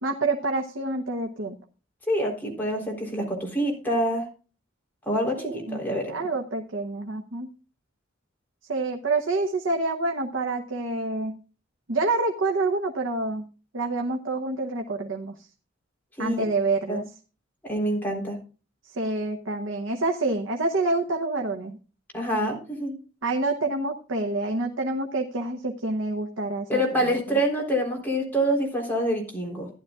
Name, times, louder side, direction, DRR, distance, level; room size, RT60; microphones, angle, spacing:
voice 1, 0.0-1.6 5.4-5.8 6.1-7.5 8.7-11.4 11.9-13.5 13.7-15.5 16.2-17.0 19.0-21.8 23.2-27.4, right 2 dB, 75° right, 3 dB, 1.0 m, -27 dB
voice 2, 2.1-4.3 5.1-6.3 16.2-16.4 16.9-17.0 17.6-18.4 22.1-23.0 26.7-29.7, equal, 10° left, -1 dB, 3.8 m, -26 dB
15.0 x 11.0 x 2.4 m, 0.34 s
head